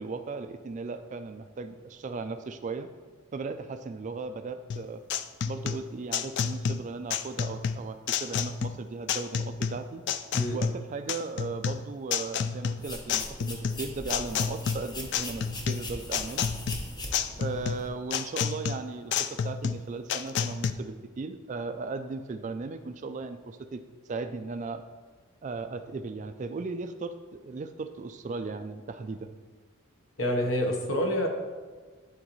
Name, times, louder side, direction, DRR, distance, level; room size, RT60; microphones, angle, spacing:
voice 1, 0.0-2.9 3.3-5.0 5.4-10.0 10.5-16.5 17.4-23.8 24.1-24.8 25.4-29.3, right 3 dB, 35° right, 9 dB, 0.3 m, -37 dB
sound 1, 4.7-20.7, left 7 dB, 55° left, 0.3 m, -30 dB
sound 2, 12.8-17.9, left 1 dB, 20° left, 0.7 m, -40 dB
voice 2, 30.2-31.3, equal, 70° left, 1 dB, 1.1 m, -27 dB
11.0 x 3.9 x 3.1 m, 1.4 s
head